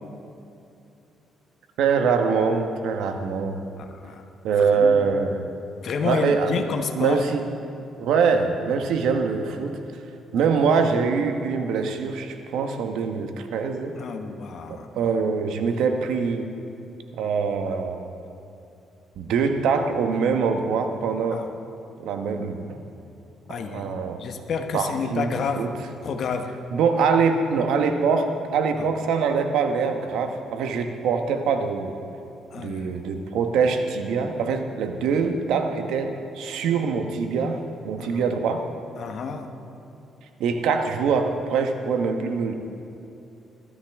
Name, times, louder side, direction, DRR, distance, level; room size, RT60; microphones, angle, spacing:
voice 1, 1.8-3.6 4.4-5.4 6.0-6.7 6.9-7.4 8.0-9.8 10.3-14.0 14.7-16.5 17.2-18.1 19.2-21.4 22.0-22.8 23.5-24.2 24.7-25.7 26.7-31.9 32.6-38.7 40.4-42.5, right 5 dB, 85° right, 6 dB, 1.2 m, -24 dB
voice 2, 3.8-4.2 4.5-5.0 5.8-7.2 14.0-14.9 21.3-21.5 23.5-25.7 26.0-26.5 28.8-28.9 32.5-33.0 38.0-38.2 39.0-39.5, left 5 dB, 60° left, 5 dB, 1.1 m, -30 dB
21.0 x 12.5 x 3.6 m, 2.8 s
cardioid pair, 90°, 0 cm